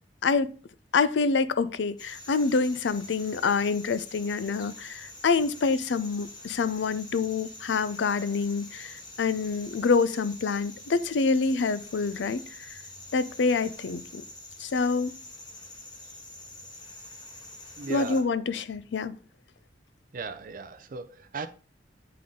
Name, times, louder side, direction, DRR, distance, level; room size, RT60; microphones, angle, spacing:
voice 1, 0.9-12.8 13.1-14.2 14.6-15.2 17.9-19.2, left 4 dB, 75° left, 0.5 m, -26 dB
sound 1, 2.0-18.2, left 1 dB, 25° left, 1.4 m, -46 dB
voice 2, 17.8-18.3 20.1-21.5, right 4 dB, 50° right, 0.5 m, -37 dB
8.5 x 3.8 x 3.7 m
head